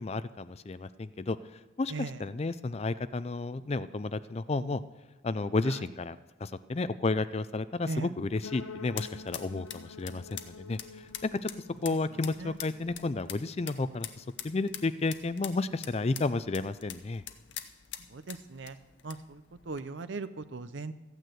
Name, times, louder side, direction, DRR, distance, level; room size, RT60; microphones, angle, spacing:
voice 1, 0.0-1.4 1.8-4.8 5.2-6.2 6.4-11.5 11.8-17.2, left 3 dB, 30° left, 14 dB, 0.4 m, -32 dB
sound 1, 8.2-19.8, left 11 dB, 55° left, 0.8 m, -46 dB
sound 2, 8.4-14.3, left 4 dB, 90° left, 0.8 m, -49 dB
voice 2, 18.1-18.8 19.0-19.4 19.7-20.9, right 3 dB, 60° right, 13 dB, 0.6 m, -38 dB
15.0 x 9.2 x 7.7 m, 1.1 s
head